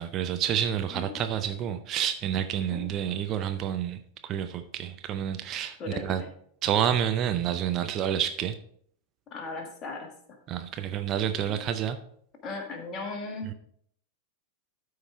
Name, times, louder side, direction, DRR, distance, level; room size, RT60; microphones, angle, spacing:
voice 1, 0.0-5.8 6.0-6.2 6.6-8.5 10.5-12.0, right 10 dB, 35° right, 8 dB, 0.5 m, -29 dB
voice 2, 0.9-1.2 2.7-2.9 5.8-6.3 9.3-10.4 11.5-11.6 12.4-13.5, left 3 dB, 30° left, 3 dB, 1.6 m, -37 dB
12.5 x 4.8 x 3.4 m, 0.65 s
figure-of-eight pair, 90°, 0 cm